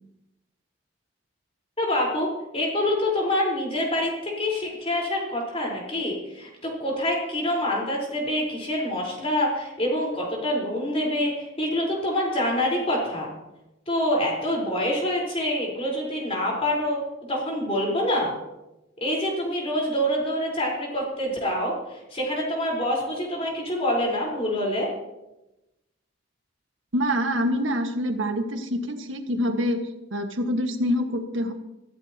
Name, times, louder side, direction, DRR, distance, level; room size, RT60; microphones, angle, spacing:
voice 1, 1.8-2.3 2.5-13.3 13.9-17.0 17.3-18.3 19.0-24.9, left 1 dB, 30° left, -2 dB, 4.4 m, -26 dB
voice 2, 26.9-31.5, equal, 80° right, 5 dB, 1.7 m, -26 dB
22.5 x 14.5 x 3.0 m, 0.95 s
head